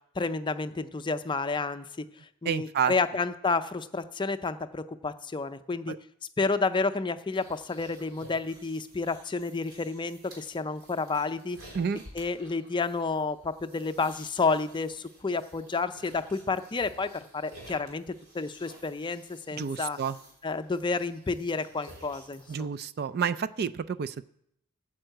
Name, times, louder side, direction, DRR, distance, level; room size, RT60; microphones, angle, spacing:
voice 1, 0.2-2.1 2.4-6.0 6.4-11.6 12.1-18.0 18.3-20.0 20.4-22.7, left 4 dB, 20° left, 10 dB, 0.5 m, -30 dB
voice 2, 2.5-2.9 5.9-6.0 11.7-12.0 19.5-20.2 22.5-24.2, right 7 dB, 45° right, 13 dB, 0.4 m, -29 dB
sound 1, 7.3-22.6, right 1 dB, 80° right, 3.7 m, -53 dB
9.3 x 7.3 x 7.7 m, 0.73 s
head